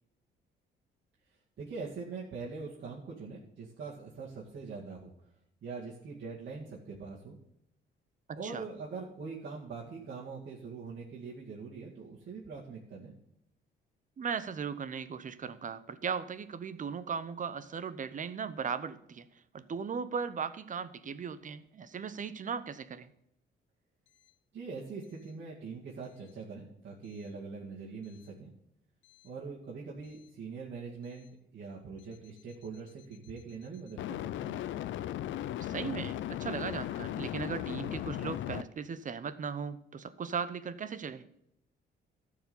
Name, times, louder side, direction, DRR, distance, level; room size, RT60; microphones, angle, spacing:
voice 1, 1.6-5.1 5.6-7.4 8.4-13.1 24.5-28.5 29.2-31.3 31.5-34.6, right 4 dB, 60° right, -5 dB, 2.1 m, -43 dB
voice 2, 8.3-8.6 14.2-19.3 19.5-23.1 35.6-41.3, right 6 dB, 40° right, 14 dB, 0.8 m, -37 dB
sound 1, 29.1-29.3 34.0-38.6, left 12 dB, 75° left, 0.5 m, -37 dB
13.0 x 4.8 x 7.0 m, 0.78 s
cardioid pair, 90°, 20 cm